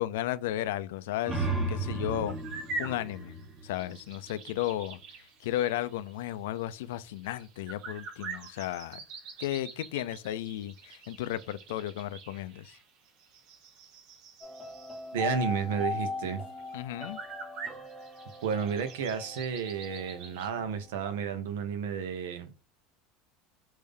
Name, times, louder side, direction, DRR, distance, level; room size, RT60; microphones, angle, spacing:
voice 1, 0.0-9.0 9.4-12.8 16.7-17.2, left 13 dB, 85° left, 0.3 m, -34 dB
sound 1, 1.0-4.4, right 2 dB, 25° right, 1.1 m, -34 dB
sound 2, 2.3-15.1 15.7-15.8 16.2-16.3 16.6-20.5, right 3 dB, 60° right, 0.9 m, -45 dB
sound 3, 14.4-20.7 21.0-21.1, left 3 dB, 5° left, 0.8 m, -39 dB
voice 2, 15.1-16.4 18.4-22.5, right 6 dB, 90° right, 0.7 m, -32 dB
3.3 x 2.6 x 3.6 m
supercardioid pair, 130°, 0 cm